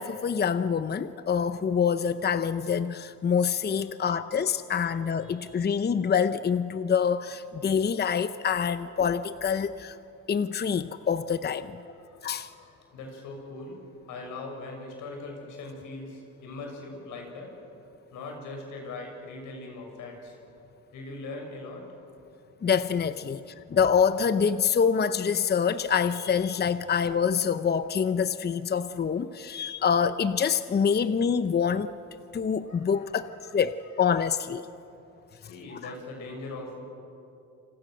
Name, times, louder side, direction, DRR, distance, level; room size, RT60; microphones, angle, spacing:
voice 1, 0.0-10.0 10.3-11.8 12.2-12.5 22.6-23.4 23.7-31.9 32.3-34.7 35.7-35.8, left 7 dB, 35° left, 12 dB, 0.8 m, -26 dB
voice 2, 5.2-5.7 11.9-13.8 14.1-17.6 18.1-20.4 20.9-21.9 30.9-31.0 32.7-33.5 35.4-36.8, left 2 dB, 90° left, 2 dB, 6.7 m, -41 dB
28.5 x 26.5 x 6.5 m, 2.7 s
cardioid pair, 90°, 30 cm